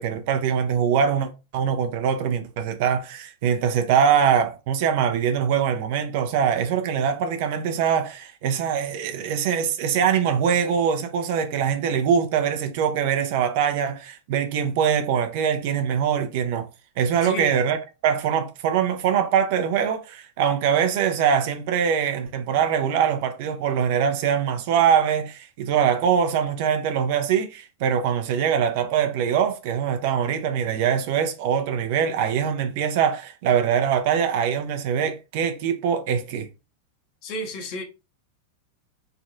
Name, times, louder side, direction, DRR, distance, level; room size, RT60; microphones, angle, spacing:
voice 1, 0.0-16.7 17.0-36.5, right 8 dB, 50° right, 0.5 m, -23 dB
voice 2, 17.2-17.5 37.2-37.8, left 2 dB, 40° left, 0.9 m, -31 dB
3.2 x 2.6 x 2.6 m
figure-of-eight pair, 90°, 0 cm